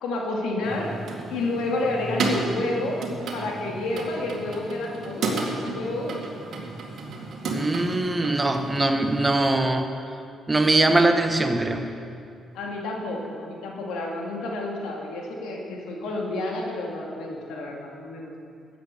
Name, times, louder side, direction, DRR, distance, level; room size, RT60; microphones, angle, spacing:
voice 1, 0.0-1.0 1.3-3.0 3.3-6.3 12.5-18.4, left 2 dB, 90° left, -1 dB, 2.2 m, -30 dB
sound 1, 0.6-9.3, right 3 dB, 65° right, 2.0 m, -32 dB
voice 2, 7.4-9.9 10.5-11.9, right 2 dB, 20° right, 6 dB, 1.1 m, -22 dB
13.5 x 8.6 x 6.8 m, 2.5 s
cardioid pair, 90°, 0 cm